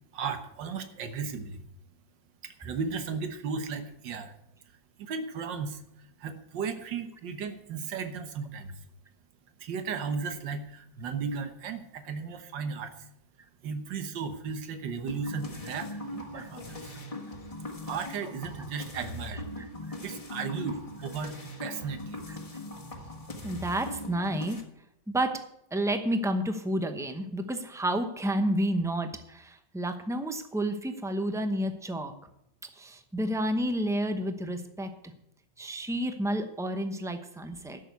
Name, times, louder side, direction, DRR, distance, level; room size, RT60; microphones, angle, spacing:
voice 1, 0.1-1.6 2.4-4.3 5.0-8.8 9.6-13.1 13.6-16.9 17.9-19.5 20.0-22.2, right 5 dB, 85° right, 9 dB, 1.8 m, -35 dB
sound 1, 15.1-24.6, left 1 dB, 20° left, 1.5 m, -40 dB
voice 2, 23.4-24.6 25.1-25.4 25.7-32.1 32.8-34.9 35.6-37.8, right 1 dB, 5° right, 7 dB, 0.4 m, -30 dB
12.0 x 6.7 x 8.2 m, 0.78 s
omnidirectional pair, 1.9 m